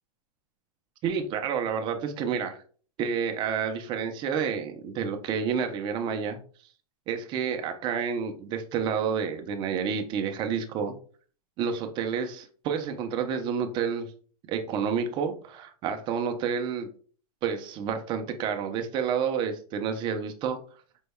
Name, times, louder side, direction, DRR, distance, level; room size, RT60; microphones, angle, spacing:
voice 1, 1.0-2.6 3.0-6.4 7.1-10.9 11.6-14.1 14.5-16.9 17.4-20.6, right 7 dB, 25° right, 5 dB, 0.6 m, -29 dB
5.2 x 3.3 x 2.2 m, 0.42 s
supercardioid pair, 165°, 19 cm